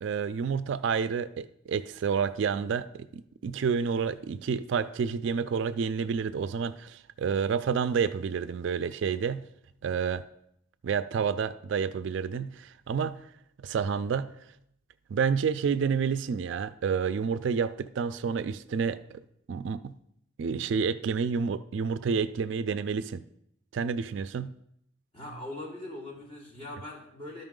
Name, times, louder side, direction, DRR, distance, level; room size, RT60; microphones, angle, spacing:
voice 1, 0.0-9.5 9.8-10.2 10.8-13.2 13.6-14.3 15.1-19.0 19.5-19.9 20.4-23.2 23.7-24.5, right 6 dB, 60° right, 14 dB, 0.3 m, -29 dB
voice 2, 25.1-27.4, left 1 dB, 30° left, -5 dB, 2.9 m, -41 dB
13.0 x 5.4 x 3.7 m, 0.75 s
head